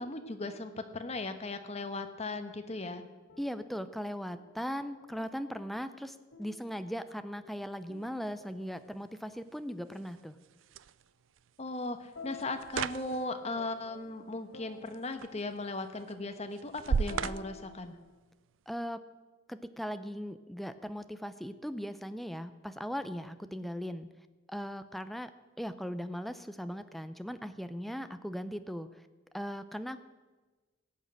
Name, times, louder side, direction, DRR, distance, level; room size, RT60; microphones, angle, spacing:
voice 1, 0.0-3.0 11.6-18.0, left 2 dB, 35° left, 8 dB, 1.1 m, -37 dB
sound 1, 3.3-5.4 6.3-9.7 12.2-18.2, left 3 dB, 90° left, 1.1 m, -53 dB
voice 2, 3.4-10.4 18.7-19.0 19.5-24.1 24.5-25.3 25.6-28.9 29.3-30.0, equal, ahead, 10 dB, 0.5 m, -38 dB
sound 2, 7.8-18.7, right 6 dB, 85° right, 0.4 m, -40 dB
17.0 x 6.5 x 8.9 m, 1.3 s
head